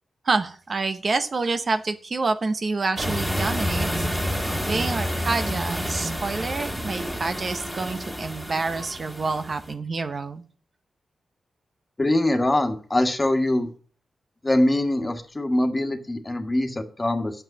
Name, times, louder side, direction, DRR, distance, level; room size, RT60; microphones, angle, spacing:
voice 1, 0.2-4.1 4.7-10.4, right 3 dB, 50° right, 9 dB, 0.9 m, -27 dB
sound 1, 3.0-9.7, equal, 10° right, 2.8 m, -29 dB
voice 2, 12.0-13.7 14.4-17.3, left 1 dB, 25° left, 6 dB, 1.7 m, -23 dB
7.7 x 5.5 x 7.2 m, 0.42 s
cardioid pair, 65°, 0 cm